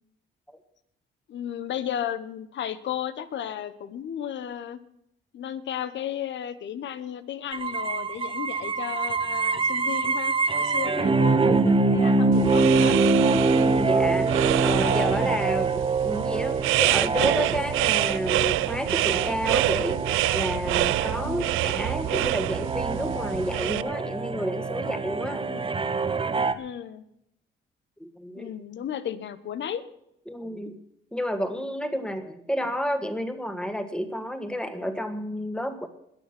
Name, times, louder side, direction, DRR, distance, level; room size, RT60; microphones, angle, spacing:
voice 1, 1.3-4.8 5.3-13.1 21.2-21.5 25.5-25.7 26.6-27.0 28.4-29.8 30.6-30.7, left 10 dB, 65° left, 13 dB, 1.2 m, -34 dB
sound 1, 7.5-26.5, right 3 dB, 25° right, 1.1 m, -25 dB
sound 2, 12.3-23.8, right 16 dB, 90° right, 0.5 m, -27 dB
voice 2, 13.5-14.3 14.6-20.0 20.3-25.5 28.0-28.5 30.3-30.8 31.1-35.9, equal, 5° left, 7 dB, 1.9 m, -30 dB
20.5 x 7.0 x 6.1 m, 0.76 s
cardioid pair, 90°, 20 cm